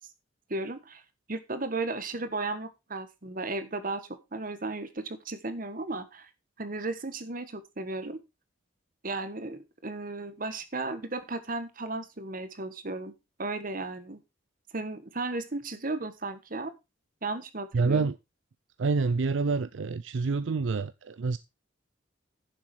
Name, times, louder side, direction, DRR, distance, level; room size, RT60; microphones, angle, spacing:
voice 1, 0.5-1.0 1.3-4.0 4.3-6.3 6.6-8.2 9.0-13.1 13.4-14.2 14.7-16.7 17.2-18.1, right 2 dB, 45° right, 1.3 m, -35 dB
voice 2, 17.7-18.2 18.8-21.4, right 4 dB, 70° right, 0.5 m, -27 dB
10.5 x 7.2 x 4.6 m
head